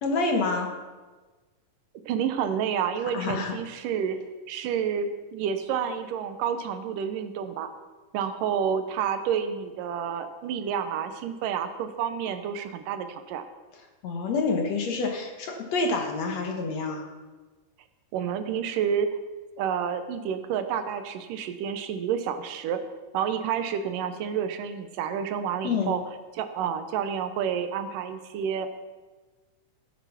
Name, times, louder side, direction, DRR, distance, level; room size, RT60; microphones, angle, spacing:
voice 1, 0.0-0.7 3.1-3.5 14.0-17.1 25.6-26.0, left 4 dB, 60° left, 3 dB, 2.3 m, -27 dB
voice 2, 2.1-4.2 4.5-7.7 8.1-13.5 18.1-19.1 19.6-22.8 23.1-26.0 26.3-28.7, right 8 dB, 80° right, 9 dB, 2.5 m, -29 dB
16.0 x 8.4 x 5.8 m, 1.3 s
omnidirectional pair, 3.8 m